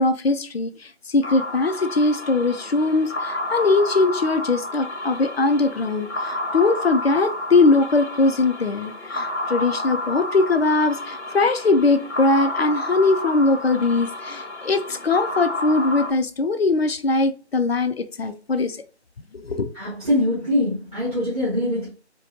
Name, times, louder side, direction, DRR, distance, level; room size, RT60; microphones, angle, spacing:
voice 1, 0.0-18.8 19.3-19.7, left 3 dB, 60° left, 0.5 m, -21 dB
sound 1, 1.2-16.1, left 1 dB, 85° left, 0.9 m, -30 dB
voice 2, 19.7-21.9, left 1 dB, 30° right, 1.3 m, -23 dB
4.4 x 2.2 x 2.7 m
figure-of-eight pair, 180°, 34 cm